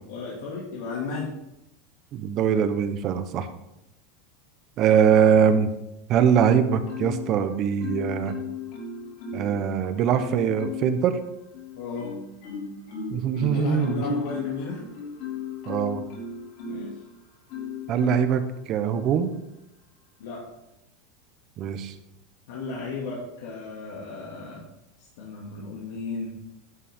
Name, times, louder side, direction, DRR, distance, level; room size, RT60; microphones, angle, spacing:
voice 1, 0.1-1.3 11.8-12.1 13.5-14.8 16.7-17.0 20.2-20.5 22.5-24.6 25.2-26.4, left 4 dB, 80° left, -4 dB, 2.3 m, -34 dB
voice 2, 2.1-3.5 4.8-5.7 6.1-8.3 9.3-11.2 13.1-14.2 15.7-16.0 17.9-19.3 21.6-21.9, right 8 dB, 35° right, 10 dB, 0.8 m, -22 dB
Marimba xylophone, 6.4-7.4 7.8-9.6 10.1-11.0 11.5-17.0 17.5-18.4 18.9-19.2, left 5 dB, 55° left, 4.3 m, -35 dB
11.0 x 8.3 x 3.7 m, 0.86 s
supercardioid pair, 160°, 0 cm